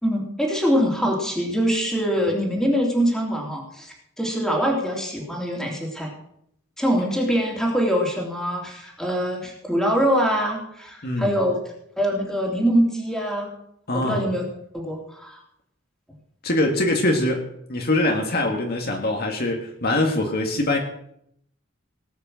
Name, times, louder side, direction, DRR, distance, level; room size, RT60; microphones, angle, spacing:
voice 1, 0.0-6.1 6.8-11.6 12.0-13.5 13.9-14.4 14.7-15.4, equal, ahead, -1 dB, 3.1 m, -23 dB
voice 2, 11.0-11.4 13.9-14.3 16.4-17.4 17.7-20.8, left 1 dB, 45° left, 2 dB, 2.0 m, -23 dB
18.5 x 6.6 x 7.6 m, 0.71 s
head